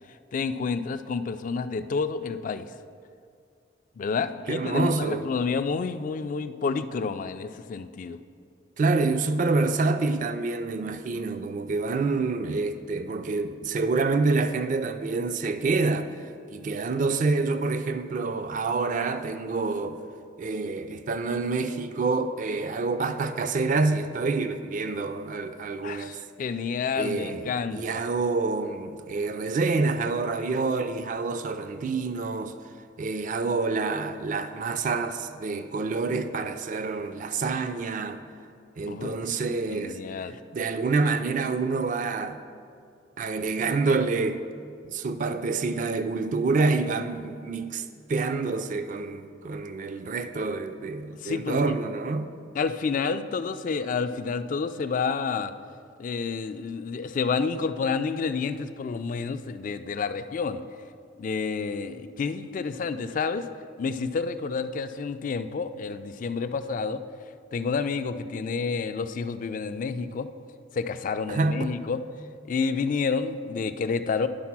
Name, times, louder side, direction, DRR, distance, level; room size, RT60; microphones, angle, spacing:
voice 1, 0.3-2.7 4.0-8.2 25.8-27.8 38.9-40.4 51.2-51.6 52.6-55.5 56.0-60.6 61.2-63.5 63.8-67.0 67.5-70.3 70.7-72.0 72.5-74.3, left 5 dB, 45° left, 11 dB, 0.3 m, -29 dB
voice 2, 4.5-5.2 8.8-16.1 16.5-20.0 20.4-26.2 27.0-27.4 27.7-32.6 33.0-38.2 38.8-40.0 40.5-42.4 43.2-44.4 44.8-52.3 71.3-71.8, right 3 dB, 45° right, 9 dB, 0.4 m, -27 dB
10.5 x 4.0 x 5.9 m, 2.3 s
head